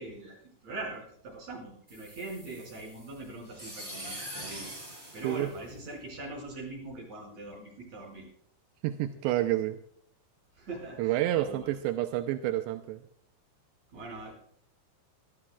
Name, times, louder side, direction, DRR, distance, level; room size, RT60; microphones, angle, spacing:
voice 1, 0.0-4.7 5.1-8.3 10.5-11.7 13.9-14.4, right 2 dB, 40° right, -2 dB, 6.6 m, -42 dB
sound 1, 1.9-6.2, right 1 dB, 15° right, 4.4 m, -44 dB
voice 2, 8.8-9.8 11.0-13.0, right 14 dB, 85° right, 6 dB, 2.9 m, -29 dB
25.0 x 13.0 x 2.4 m, 0.64 s
omnidirectional pair, 5.0 m